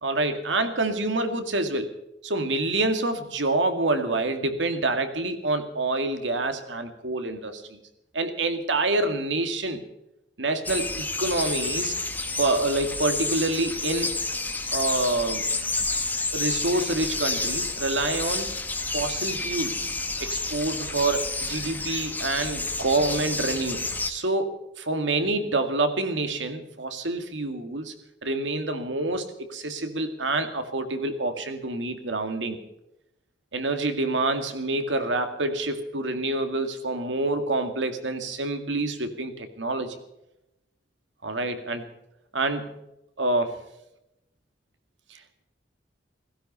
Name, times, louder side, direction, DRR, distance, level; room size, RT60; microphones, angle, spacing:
voice 1, 0.0-1.9 2.2-7.8 8.1-9.8 10.4-12.0 12.4-14.2 14.7-15.5 16.3-18.6 18.9-19.8 20.2-27.9 28.2-32.6 33.5-40.0 41.2-41.8 42.3-42.8 43.2-43.6 45.1-45.2, right 2 dB, 90° right, 7 dB, 2.1 m, -27 dB
sound 1, 10.7-24.1, left 3 dB, 10° left, 1.5 m, -30 dB
16.5 x 16.0 x 5.5 m, 0.87 s
head